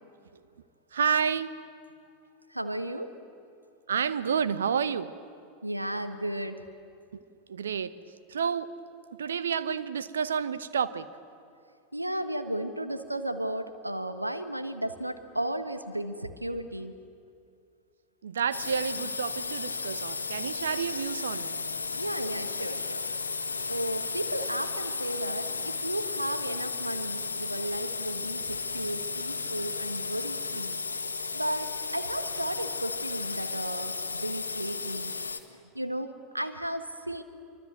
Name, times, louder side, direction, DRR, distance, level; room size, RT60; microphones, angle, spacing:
voice 1, 0.9-1.5 3.9-5.1 7.1-7.2 7.5-8.0 8.3-8.7 9.2-11.1 18.2-21.5, right 7 dB, 70° right, 1.0 m, -29 dB
voice 2, 2.5-3.1 5.6-6.6 11.9-16.9 22.0-23.0 23.7-30.8 31.3-35.1 35.7-37.2, right 1 dB, 90° right, 1.3 m, -34 dB
sound 1, 18.5-35.4, left 4 dB, 80° left, 1.4 m, -34 dB
26.0 x 24.5 x 8.0 m
figure-of-eight pair, 80°, 0 cm